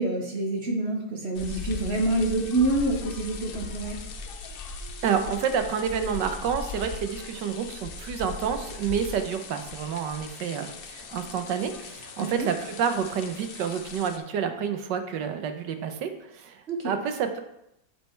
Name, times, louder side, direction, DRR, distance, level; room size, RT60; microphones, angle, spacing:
voice 1, 0.0-4.0 12.2-12.5 16.7-16.9, right 2 dB, 45° right, 2 dB, 1.1 m, -27 dB
sound 1, 1.3-14.2, left 4 dB, 90° left, 0.5 m, -39 dB
voice 2, 5.0-17.4, right 7 dB, 80° right, 7 dB, 1.4 m, -29 dB
7.4 x 5.4 x 4.4 m, 0.82 s
omnidirectional pair, 1.9 m